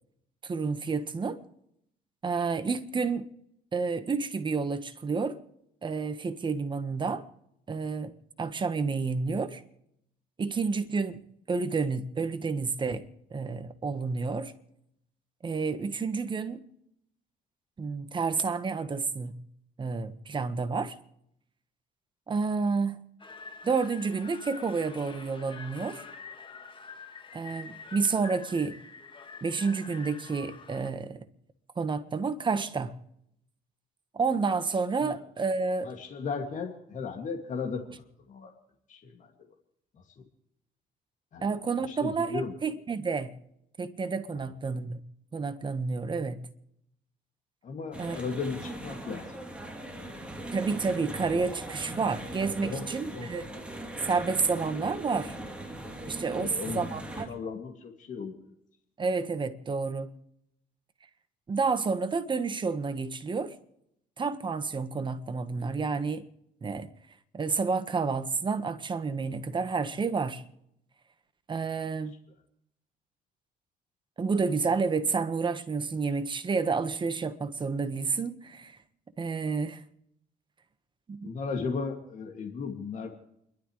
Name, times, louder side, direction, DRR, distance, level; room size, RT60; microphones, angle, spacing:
voice 1, 0.4-1.4 2.2-3.3 3.7-5.4 5.8-7.2 7.7-9.6 10.4-11.2 11.5-14.5 15.4-16.6 17.8-19.4 19.8-21.0 22.3-23.0 23.6-26.0 27.3-28.8 29.4-31.3 31.8-33.0 34.1-35.9 41.4-43.3 43.8-45.0 45.3-46.5 48.0-48.2 50.5-53.5 54.0-55.3 56.1-57.3 59.0-60.1 61.5-63.5 64.2-66.2 66.6-66.9 67.3-70.4 71.5-72.1 74.2-78.8 79.2-79.8 81.1-81.3, right 4 dB, 30° right, 1.4 m, -30 dB
sound 1, 23.2-30.9, left 5 dB, 30° left, 1.9 m, -46 dB
voice 2, 35.8-37.8 38.3-38.5 38.9-39.3 40.2-40.3 41.3-42.5 44.3-44.4 47.6-50.1 52.6-52.9 53.1-53.3 56.3-57.0 57.3-58.5 81.2-83.1, left 5 dB, 50° left, 2.4 m, -36 dB
sound 2, 47.9-57.2, right 1 dB, 5° right, 3.2 m, -40 dB
29.5 x 12.0 x 3.3 m
cardioid pair, 110°, 17 cm